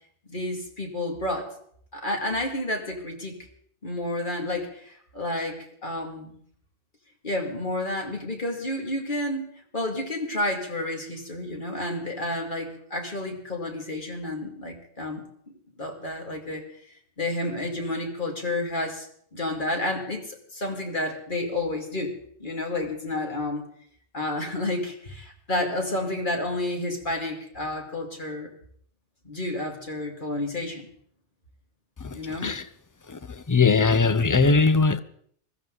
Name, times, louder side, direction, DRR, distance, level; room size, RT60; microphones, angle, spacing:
voice 1, 0.3-1.5 1.9-3.4 3.8-6.4 7.2-16.6 17.2-19.1 19.3-22.1 22.4-23.6 24.1-28.5 29.2-30.9 32.1-32.5, left 1 dB, 50° left, 2.5 m, -30 dB
voice 2, 32.0-32.7 33.1-35.0, left 4 dB, 25° left, 0.4 m, -21 dB
20.5 x 14.5 x 3.9 m
omnidirectional pair, 1.1 m